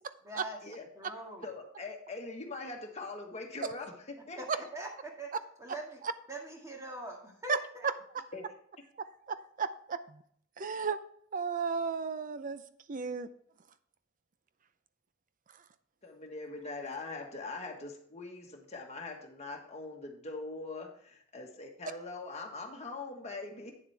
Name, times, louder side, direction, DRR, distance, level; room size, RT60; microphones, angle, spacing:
voice 1, 0.2-1.5 4.4-4.5 4.7-5.3 5.6-6.0 6.3-7.9, right 1 dB, 15° right, 0 dB, 1.8 m, -43 dB
voice 2, 1.4-4.6 8.3-8.4 16.0-23.7, left 3 dB, 35° left, 2 dB, 1.4 m, -42 dB
voice 3, 9.0-10.2 10.6-11.0 11.3-12.6 12.9-13.3, right 5 dB, 40° right, 12 dB, 0.5 m, -34 dB
9.3 x 7.2 x 3.4 m, 0.65 s
head